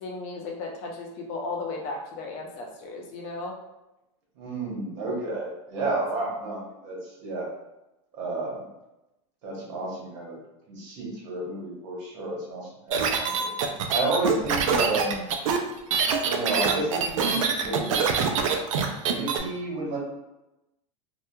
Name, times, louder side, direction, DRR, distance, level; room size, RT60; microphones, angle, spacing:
voice 1, 0.0-3.6, left 3 dB, 45° left, 0 dB, 0.5 m, -35 dB
voice 2, 4.4-7.5 8.2-8.6 9.4-10.4 10.7-13.5 13.9-15.3 16.2-18.0 19.0-20.0, right 2 dB, 65° right, -4 dB, 1.1 m, -31 dB
sound 1, 12.9-19.4, right 6 dB, 85° right, 0.4 m, -25 dB
2.7 x 2.3 x 2.2 m, 0.94 s
supercardioid pair, 140°, 16 cm